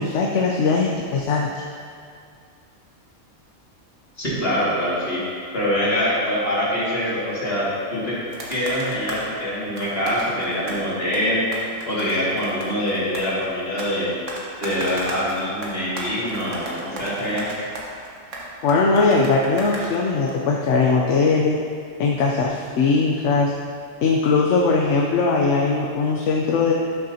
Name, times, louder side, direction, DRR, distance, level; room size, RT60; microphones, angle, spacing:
voice 1, 0.0-1.6 18.6-21.6 22.0-23.5 24.0-26.7, left 4 dB, 70° left, -1 dB, 1.0 m, -20 dB
voice 2, 4.2-5.2 5.5-8.2 8.5-11.4 11.9-14.2 14.6-17.5, equal, 50° left, -8 dB, 2.4 m, -24 dB
sound 1, 8.3-9.3 9.8-10.9 11.1-13.9 14.3-20.3, right 2 dB, 70° right, 1.6 m, -35 dB
12.0 x 6.6 x 2.8 m, 2.2 s
omnidirectional pair, 1.3 m